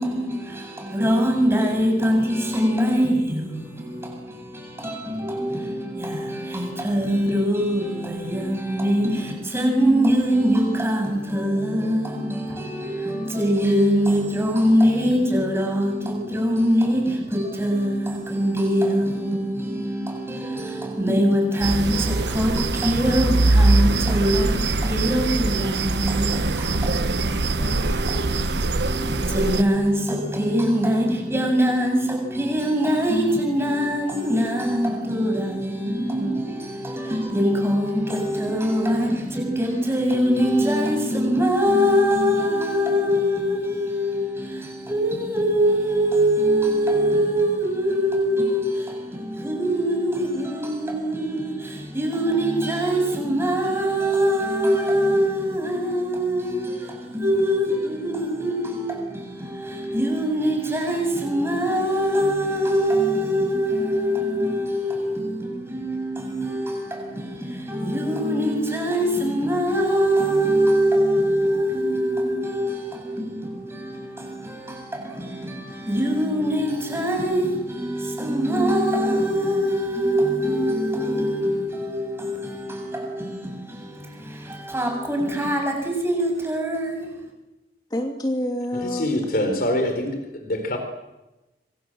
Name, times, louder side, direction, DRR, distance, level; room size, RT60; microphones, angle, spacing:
voice 1, 0.0-87.1, equal, 15° right, 7.5 m, -23 dB
sound 1, 21.6-29.6, right 2 dB, 75° right, 1.2 m, -22 dB
voice 2, 87.9-89.2, left 1 dB, 25° left, 2.7 m, -27 dB
voice 3, 88.8-90.1 90.5-90.8, left 1 dB, 55° left, 4.3 m, -24 dB
27.0 x 24.0 x 7.9 m
head